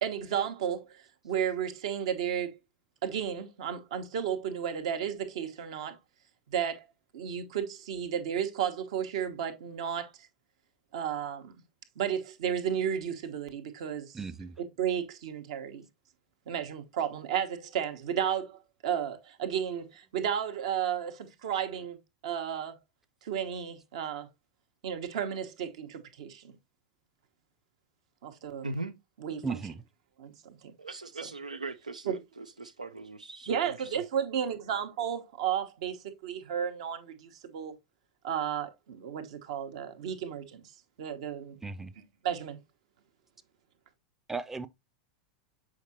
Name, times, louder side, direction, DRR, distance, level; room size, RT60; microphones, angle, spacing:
voice 1, 0.0-2.6 3.0-6.0 6.5-6.9 7.1-10.1 10.9-11.6 12.0-14.2 14.6-15.8 16.5-22.0 22.2-22.8 23.2-24.3 24.8-26.5 28.2-28.7 29.2-29.6 30.2-30.6 32.1-32.2 33.5-37.7 38.2-40.6 41.0-41.6 42.2-42.6, right 8 dB, 60° right, 1.1 m, -33 dB
voice 2, 14.1-14.6 29.4-29.8 41.6-41.9 44.3-44.7, right 4 dB, 10° right, 0.5 m, -36 dB
voice 3, 28.6-28.9 30.8-34.0, right 3 dB, 85° right, 0.5 m, -40 dB
7.2 x 4.9 x 2.7 m
figure-of-eight pair, 90°, 4 cm